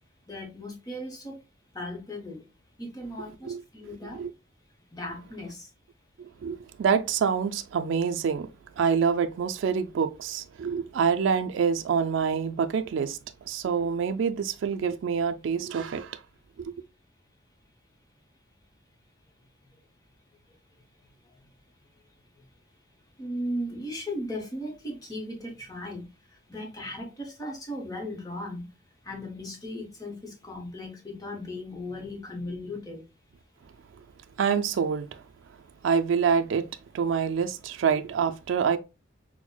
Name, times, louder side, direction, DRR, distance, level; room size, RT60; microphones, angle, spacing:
voice 1, 0.3-1.4 1.7-2.4 2.8-4.2 4.9-5.7 23.2-26.0 26.5-28.7 29.0-33.0, left 1 dB, 20° left, 0.9 m, -37 dB
voice 2, 6.4-8.5 8.8-13.2 13.5-16.2 34.4-35.2 35.8-36.6 36.9-38.8, right 6 dB, 75° right, 0.3 m, -26 dB
5.9 x 2.1 x 2.2 m
head